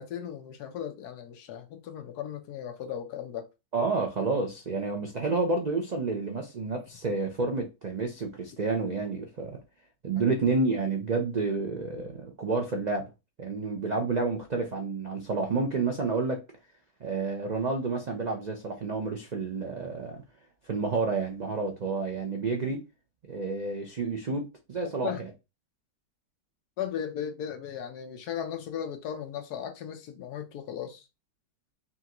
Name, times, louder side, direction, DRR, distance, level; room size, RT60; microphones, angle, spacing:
voice 1, 0.0-3.5 10.2-10.3 25.0-25.2 26.8-31.0, left 9 dB, 75° left, 1.2 m, -36 dB
voice 2, 3.7-9.6 10.0-13.1 13.4-16.4 17.0-20.2 20.6-22.8 23.3-25.3, right 3 dB, 75° right, 0.4 m, -30 dB
5.5 x 2.5 x 2.9 m
omnidirectional pair, 1.7 m